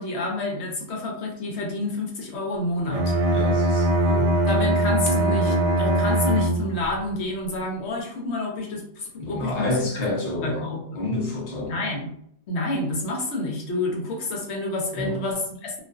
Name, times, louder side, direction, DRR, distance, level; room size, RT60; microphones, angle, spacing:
voice 1, 0.0-3.1 4.5-9.7 10.2-11.0 11.7-12.1 12.5-15.8, left 2 dB, 75° left, 0 dB, 0.9 m, -29 dB
Bowed string instrument, 2.9-6.9, right 1 dB, 70° right, 0.3 m, -21 dB
voice 2, 3.3-4.3 9.2-10.7 10.9-11.8 14.9-15.2, left 2 dB, 40° left, -2 dB, 0.7 m, -29 dB
sound 1, 5.0-7.1, right 1 dB, 50° right, 0.8 m, -39 dB
2.4 x 2.3 x 2.3 m, 0.69 s
omnidirectional pair, 1.2 m